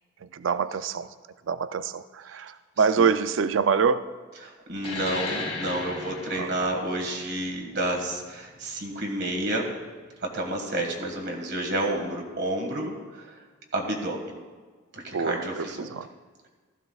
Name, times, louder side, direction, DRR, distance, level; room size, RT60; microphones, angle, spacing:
voice 1, 0.3-1.1 1.5-4.0 6.4-6.5 15.1-16.1, right 5 dB, 70° right, 12 dB, 0.4 m, -25 dB
voice 2, 4.4-9.7 10.2-13.4 13.7-14.4 14.9-15.9, right 1 dB, 55° right, 1 dB, 1.7 m, -30 dB
sound 1, 4.8-9.9, left 3 dB, 30° left, 2.0 m, -37 dB
15.5 x 14.0 x 2.4 m, 1.4 s
head